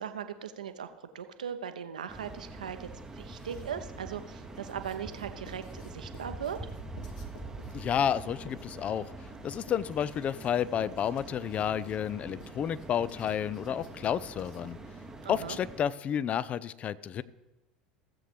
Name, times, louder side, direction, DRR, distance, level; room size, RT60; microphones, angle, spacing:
voice 1, 0.0-2.9 3.1-6.6 15.2-15.6, right 8 dB, 70° right, 9 dB, 0.7 m, -39 dB
sound 1, 2.1-15.8, right 2 dB, 10° right, 0.8 m, -45 dB
Writing, 3.2-3.9 4.6-14.9, left 3 dB, 65° left, 1.3 m, -55 dB
voice 2, 7.7-9.1 9.4-14.8 15.3-17.2, left 9 dB, 30° left, 18 dB, 0.4 m, -31 dB
16.0 x 7.8 x 3.4 m, 1.1 s
figure-of-eight pair, 75°, 4 cm